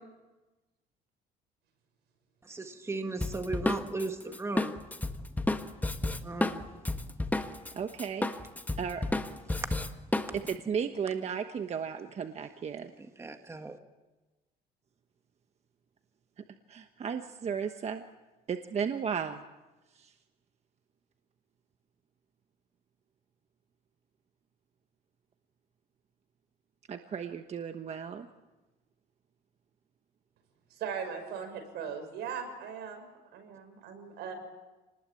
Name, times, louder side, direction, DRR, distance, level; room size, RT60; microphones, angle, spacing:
voice 1, 2.5-4.8 6.2-6.6 13.2-13.8, right 3 dB, 15° right, 6 dB, 1.7 m, -36 dB
Drum kit, 3.2-7.7 8.0-10.5, left 2 dB, 10° left, 1.4 m, -31 dB
voice 2, 7.7-8.3 8.8-9.0 10.3-12.9 16.7-18.0 18.5-19.4 19.9-20.1 26.9-28.3, right 7 dB, 40° right, 7 dB, 1.2 m, -34 dB
voice 3, 30.7-34.3, right 6 dB, 80° right, 6 dB, 6.4 m, -39 dB
28.5 x 20.0 x 8.6 m, 1.2 s
cardioid pair, 110°, 17 cm